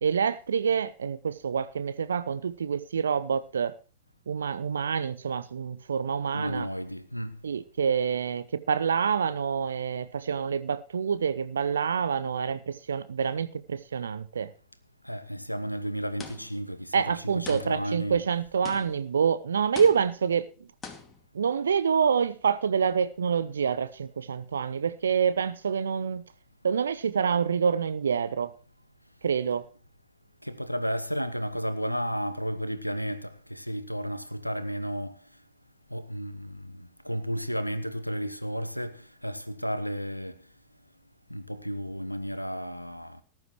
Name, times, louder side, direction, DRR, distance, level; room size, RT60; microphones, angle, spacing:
voice 1, 0.0-3.7 4.3-6.7 7.4-14.5 16.9-20.5 21.3-26.2 26.6-28.5 29.2-29.6, right 6 dB, 70° right, 0.7 m, -27 dB
voice 2, 6.3-7.4 15.0-18.2 30.4-35.2 35.9-40.4 41.3-43.2, equal, 90° left, 0.9 m, -33 dB
sound 1, 16.2-16.7 17.5-18.0 18.6-19.2 19.7-20.3 20.8-21.2, left 5 dB, 20° left, 2.3 m, -43 dB
19.0 x 11.0 x 3.1 m
figure-of-eight pair, 90°, 0 cm